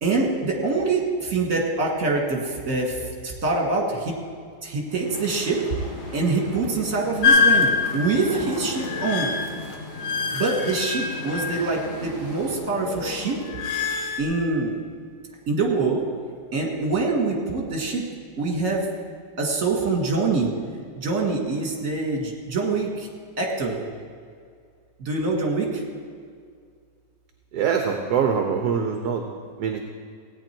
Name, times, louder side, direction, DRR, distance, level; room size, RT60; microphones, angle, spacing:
voice 1, 0.0-4.1 4.6-5.6 6.1-7.7 7.9-9.3 10.3-13.4 14.2-14.7 15.5-16.0 16.5-18.0 18.4-18.9 19.4-20.5 21.0-23.1 23.4-23.8 25.0-25.8, right 3 dB, 50° right, 0 dB, 2.2 m, -25 dB
sound 1, 4.9-12.6, left 1 dB, 25° left, 2.7 m, -38 dB
sound 2, 7.2-11.9 12.3-14.2, left 4 dB, 85° left, 1.7 m, -24 dB
voice 2, 27.5-29.2 29.6-29.8, right 6 dB, 65° right, 4 dB, 1.3 m, -23 dB
16.5 x 9.3 x 4.5 m, 2.1 s
omnidirectional pair, 1.9 m